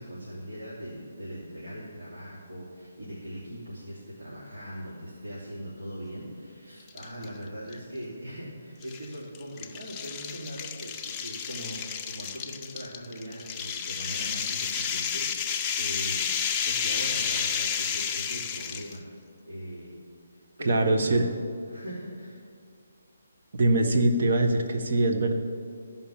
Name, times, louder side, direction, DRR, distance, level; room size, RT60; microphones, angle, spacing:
voice 1, 0.0-19.0 19.5-20.0 20.3-21.3 21.7-22.4, equal, 80° right, -8 dB, 3.2 m, -40 dB
sound 1, 6.9-7.3 7.7-7.8 8.8-19.0, left 7 dB, 15° left, 0.5 m, -31 dB
voice 2, 20.6-21.3 23.6-25.3, right 2 dB, 55° right, 5 dB, 1.2 m, -23 dB
14.5 x 5.7 x 7.2 m, 2.2 s
hypercardioid pair, 165°, 0 cm